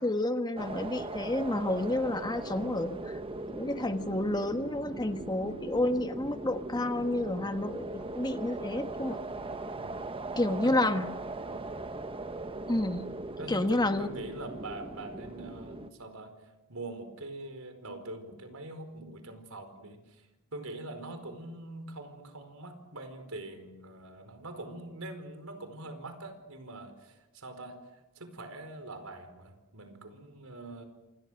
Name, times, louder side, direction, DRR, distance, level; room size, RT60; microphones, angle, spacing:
voice 1, 0.0-3.2 3.5-9.2 10.3-11.1 12.7-13.1 13.5-14.1, left 1 dB, 20° left, 8 dB, 1.4 m, -30 dB
sound 1, 0.6-15.9, right 2 dB, 25° right, 1.1 m, -40 dB
voice 2, 9.7-10.1 10.6-10.7 11.5-11.7 13.4-16.3 16.7-20.3 20.5-30.8, right 2 dB, 85° right, 8 dB, 4.8 m, -43 dB
27.5 x 27.5 x 6.5 m, 0.97 s
head